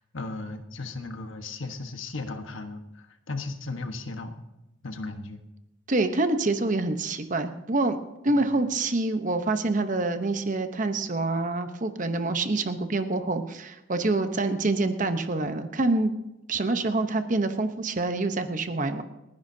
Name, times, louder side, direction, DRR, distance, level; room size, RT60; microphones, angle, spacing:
voice 1, 0.0-4.4 4.8-5.4 8.3-8.5, left 3 dB, 80° left, 6 dB, 1.3 m, -36 dB
voice 2, 5.9-8.0 8.2-16.1 16.5-19.0, right 2 dB, 40° right, 8 dB, 0.9 m, -26 dB
29.5 x 10.5 x 2.8 m, 0.92 s
head